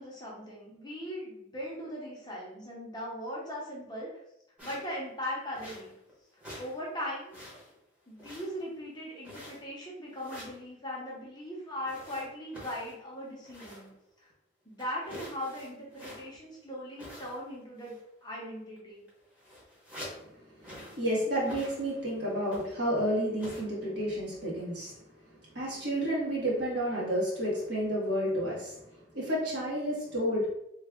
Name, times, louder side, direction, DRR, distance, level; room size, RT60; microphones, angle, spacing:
voice 1, 0.0-4.2 4.6-5.9 6.6-7.3 8.1-13.9 14.2-14.3 14.6-19.0, equal, 20° left, -4 dB, 0.7 m, -39 dB
sound 1, 4.6-5.0 5.5-6.1 6.4-6.8 7.1-7.8 8.2-8.8 9.2-9.8 10.1-10.6 11.8-14.0 14.3-14.4 14.8-16.5 17.0-17.5 17.8-18.1 18.8-18.9 19.1-20.3 20.6-21.1 21.4-22.1 22.5-22.9 23.4-23.6, equal, 5° right, 1.0 m, -46 dB
voice 2, 20.9-25.0 25.5-28.8 29.1-30.5, equal, 55° right, -6 dB, 1.4 m, -30 dB
3.2 x 2.3 x 3.6 m, 0.83 s
head